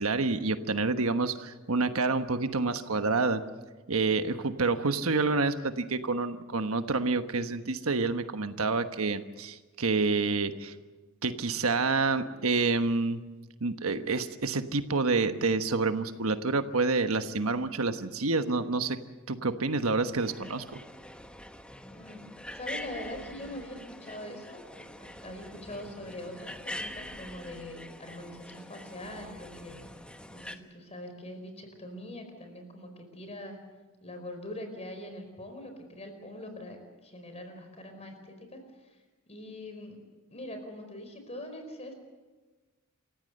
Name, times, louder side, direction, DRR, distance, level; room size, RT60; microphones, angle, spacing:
voice 1, 0.0-3.4 3.9-10.7 11.2-13.2 13.6-19.0 19.3-20.8, right 3 dB, 80° right, 9 dB, 1.2 m, -28 dB
sound 1, 20.2-30.6, left 1 dB, 5° left, 1.1 m, -44 dB
voice 2, 21.8-22.3 22.5-29.8 30.3-33.6 34.0-39.0 39.3-40.0 40.3-41.9, left 1 dB, 30° left, 6 dB, 4.7 m, -43 dB
28.0 x 15.5 x 7.8 m, 1.2 s
head